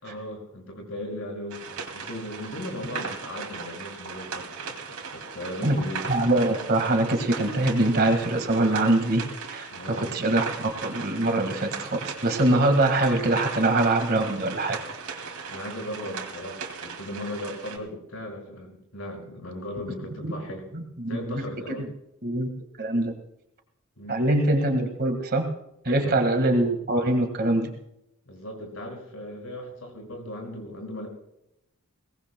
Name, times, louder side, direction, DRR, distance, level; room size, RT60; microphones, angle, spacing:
voice 1, 0.0-6.1 9.7-10.2 15.5-20.7 21.1-21.9 24.0-24.2 26.0-26.3 28.3-31.1, left 1 dB, 70° left, 1 dB, 5.8 m, -37 dB
sound 1, 1.5-17.8, right 5 dB, 85° right, 2.6 m, -38 dB
voice 2, 6.1-9.2 9.5-9.7 10.0-14.8 15.1-15.2 20.2-20.3 20.7-21.4 22.2-22.5 22.8-23.1 24.1-25.5 25.9-27.7, right 2 dB, 45° right, 5 dB, 1.7 m, -23 dB
22.5 x 18.5 x 2.2 m, 0.82 s
head